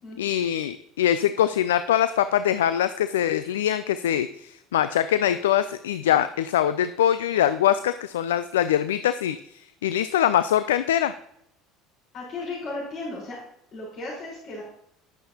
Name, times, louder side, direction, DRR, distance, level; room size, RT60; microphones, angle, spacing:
voice 1, 0.2-11.1, left 10 dB, 75° left, 13 dB, 0.3 m, -23 dB
voice 2, 12.1-13.4 13.7-14.6, left 2 dB, 50° left, -6 dB, 4.5 m, -35 dB
11.0 x 10.0 x 2.9 m, 0.76 s
figure-of-eight pair, 65°, 0 cm